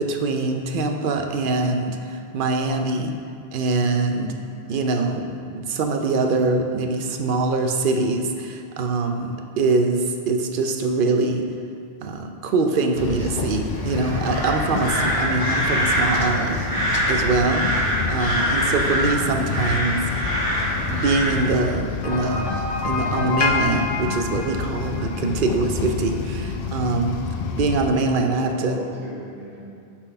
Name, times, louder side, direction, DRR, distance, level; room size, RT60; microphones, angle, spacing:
voice 1, 0.0-3.1 3.5-4.3 4.7-11.4 12.0-17.6 18.1-20.0 20.9-22.6 22.8-27.2 27.5-28.8, right 3 dB, 60° right, 4 dB, 0.7 m, -23 dB
voice 2, 4.0-4.4 17.7-18.0 27.5-27.8 28.0-29.7, right 1 dB, 10° right, -8 dB, 1.3 m, -39 dB
sound 1, 13.0-27.9, left 5 dB, 65° left, 0.7 m, -29 dB
sound 2, 13.7-21.5, equal, 20° left, 1.7 m, -24 dB
sound 3, 22.0-25.4, left 3 dB, 40° left, 0.4 m, -27 dB
6.0 x 4.1 x 5.3 m, 2.4 s
omnidirectional pair, 1.1 m